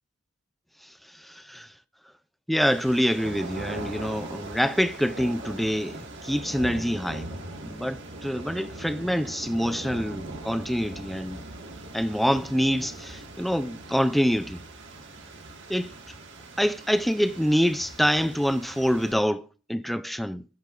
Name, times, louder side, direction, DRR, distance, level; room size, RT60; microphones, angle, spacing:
voice 1, 0.8-1.7 2.5-7.3 7.6-11.4 11.9-14.6 15.7-15.9 16.6-20.5, equal, ahead, 0.4 m, -26 dB
sound 1, 2.6-19.1, right 2 dB, 60° right, 1.8 m, -40 dB
13.0 x 9.0 x 2.5 m
head